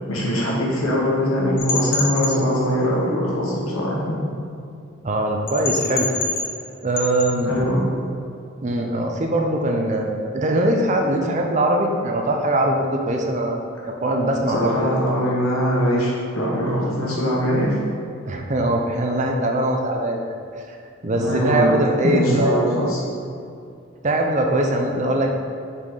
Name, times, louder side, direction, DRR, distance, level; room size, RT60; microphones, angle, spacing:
voice 1, 0.1-4.2 7.5-7.8 14.5-17.8 21.1-21.7 22.0-23.0, equal, 90° left, -5 dB, 1.5 m, -22 dB
sound 1, 1.6-2.4 5.5-6.7 7.0-7.3, left 4 dB, 60° left, 1.0 m, -26 dB
voice 2, 5.0-6.1 6.8-7.5 8.6-14.7 18.3-20.2 21.0-22.6 24.0-25.3, right 1 dB, 35° right, 2 dB, 0.5 m, -21 dB
6.0 x 4.3 x 3.8 m, 2.5 s
head